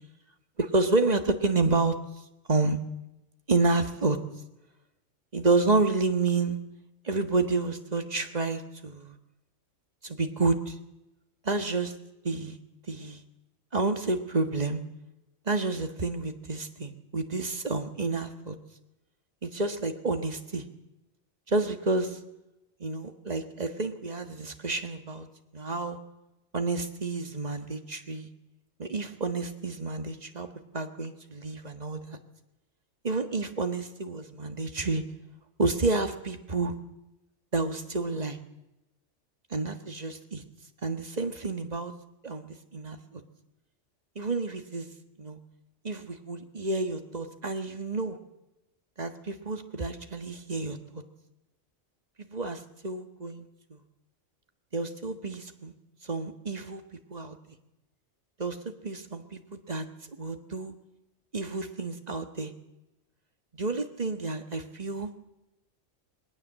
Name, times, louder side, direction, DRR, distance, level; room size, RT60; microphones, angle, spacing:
voice 1, 0.6-2.0 2.5-2.8 3.5-4.2 5.3-6.6 7.0-9.2 10.0-10.8 11.4-11.9 12.2-12.6 12.9-13.2 13.7-14.8 15.5-18.6 19.4-20.7 21.5-22.2 22.8-25.3 25.5-26.0 26.5-28.3 28.8-30.5 30.7-32.2 33.0-35.0 35.6-36.7 37.5-38.4 39.5-40.4 40.8-41.9 42.2-43.2 44.2-44.9 45.2-45.4 45.8-48.2 49.0-51.0 52.3-53.4 53.7-53.8 54.7-55.7 56.0-56.8 57.1-57.6 58.4-59.8 60.2-60.7 61.3-62.5 63.6-65.1, right 3 dB, 35° right, 7 dB, 1.7 m, -29 dB
21.0 x 18.5 x 7.5 m, 0.95 s
omnidirectional pair, 1.3 m